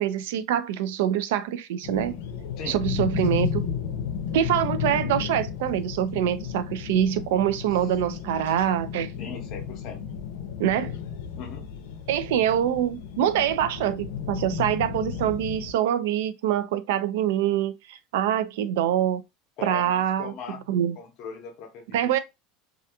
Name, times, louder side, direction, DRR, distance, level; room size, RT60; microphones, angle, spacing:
voice 1, 0.0-2.1 2.7-3.6 4.3-9.1 10.6-10.9 12.1-19.2 19.6-20.3 20.7-21.0 21.9-22.2, right 10 dB, 85° right, 0.3 m, -25 dB
sound 1, 1.8-15.7, left 8 dB, 85° left, 0.5 m, -33 dB
voice 2, 9.2-10.1 11.4-11.7 19.6-20.7 21.0-22.1, left 6 dB, 40° left, 0.7 m, -39 dB
2.4 x 2.2 x 2.7 m
cardioid pair, 180°, 0 cm